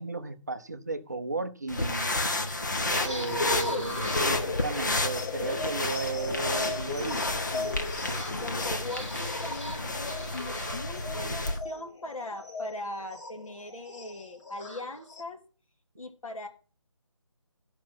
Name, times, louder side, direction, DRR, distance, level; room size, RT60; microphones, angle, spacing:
voice 1, 0.0-2.2 3.0-7.7, right 3 dB, 30° right, 0.6 m, -35 dB
sound 1, 1.7-11.6, left 2 dB, 35° left, 1.0 m, -31 dB
sound 2, 2.9-15.2, left 3 dB, 60° left, 3.7 m, -37 dB
voice 2, 3.4-3.9 5.4-5.7 8.4-15.4 16.0-16.5, left 1 dB, 85° left, 2.2 m, -40 dB
11.5 x 5.3 x 6.0 m
figure-of-eight pair, 175°, 17 cm